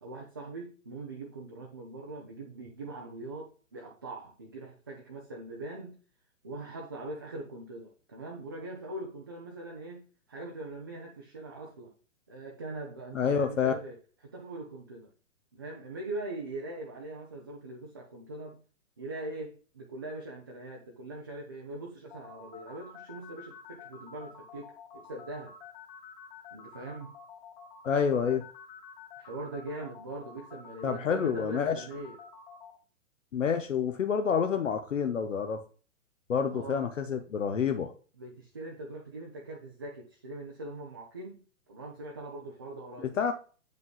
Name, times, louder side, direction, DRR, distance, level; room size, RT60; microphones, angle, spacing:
voice 1, 0.0-6.0 6.4-11.9 12.3-14.0 14.2-15.1 15.5-18.6 19.0-25.5 26.5-27.1 29.2-32.2 36.5-36.9 38.1-41.4 41.7-43.2, right 2 dB, 20° right, -1 dB, 0.4 m, -42 dB
voice 2, 13.1-13.7 27.8-28.4 30.8-31.8 33.3-35.6 36.3-37.9 43.0-43.3, left 6 dB, 65° left, 6 dB, 0.8 m, -28 dB
sound 1, 22.1-32.7, left 6 dB, 30° left, 1.6 m, -49 dB
7.9 x 5.2 x 2.2 m, 0.39 s
figure-of-eight pair, 120°, 41 cm